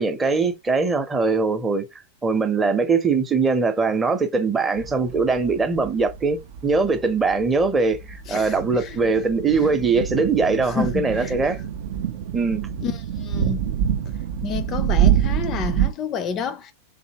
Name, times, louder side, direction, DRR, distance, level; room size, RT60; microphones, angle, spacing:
voice 1, 0.0-1.9 2.2-11.6 12.3-12.7, right 4 dB, 15° right, 0.7 m, -21 dB
sound 1, 4.8-15.9, right 10 dB, 55° right, 0.3 m, -26 dB
voice 2, 8.3-9.0 10.8-11.3 12.8-12.9 13.2-13.7 14.4-16.7, left 7 dB, 30° left, 0.4 m, -29 dB
3.4 x 2.7 x 2.8 m
figure-of-eight pair, 90°, 0 cm